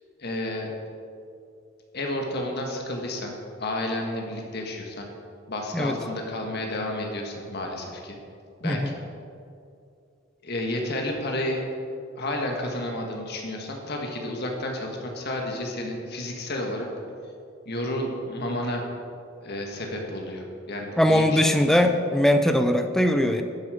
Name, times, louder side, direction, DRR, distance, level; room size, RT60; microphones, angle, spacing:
voice 1, 0.2-0.7 1.9-3.3 3.6-5.1 5.5-8.2 8.6-9.0 10.4-11.6 12.1-16.9 17.6-18.8 19.4-21.8, left 1 dB, 50° left, 1 dB, 1.6 m, -31 dB
voice 2, 21.0-23.4, left 1 dB, ahead, 6 dB, 0.5 m, -21 dB
11.5 x 7.8 x 5.1 m, 2.5 s
head